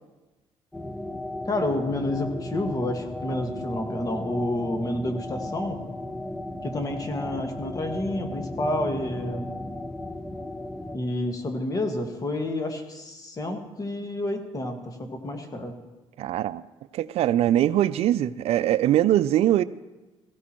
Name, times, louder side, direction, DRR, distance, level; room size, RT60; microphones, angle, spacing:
sound 1, 0.7-11.0, left 1 dB, 5° left, 0.7 m, -35 dB
voice 1, 1.4-5.8 6.6-9.5 10.9-15.7, left 1 dB, 35° left, 4 dB, 1.8 m, -29 dB
voice 2, 16.2-16.6 16.9-19.6, right 12 dB, 70° right, 15 dB, 0.4 m, -22 dB
17.0 x 15.5 x 3.0 m, 1.1 s
cardioid pair, 90°, 11 cm